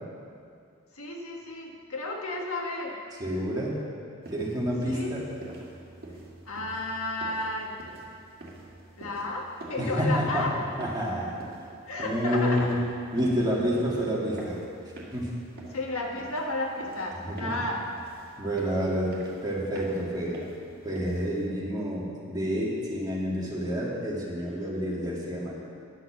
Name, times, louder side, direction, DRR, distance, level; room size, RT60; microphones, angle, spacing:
voice 1, 0.9-3.0 4.8-5.1 6.4-7.8 9.0-10.6 11.9-12.7 15.7-17.8, left 2 dB, 80° left, 0 dB, 1.5 m, -32 dB
voice 2, 3.2-3.8 4.3-5.2 9.8-10.5 10.8-11.5 12.0-12.7 13.1-14.6 15.1-15.3 17.2-17.6 18.4-20.4 20.8-25.5, equal, 20° right, -5 dB, 2.1 m, -29 dB
sound 1, 4.2-21.5, right 1 dB, 45° right, 2.0 m, -47 dB
10.5 x 7.8 x 7.1 m, 2.3 s
head